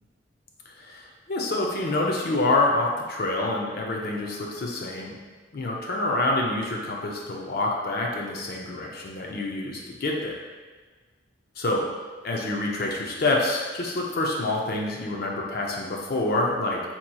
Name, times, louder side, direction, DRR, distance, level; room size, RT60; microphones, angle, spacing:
voice 1, 0.7-5.2 5.5-10.4 11.6-11.8 12.2-16.8, left 2 dB, 50° left, -1 dB, 0.5 m, -27 dB
4.1 x 2.9 x 2.2 m, 1.4 s
head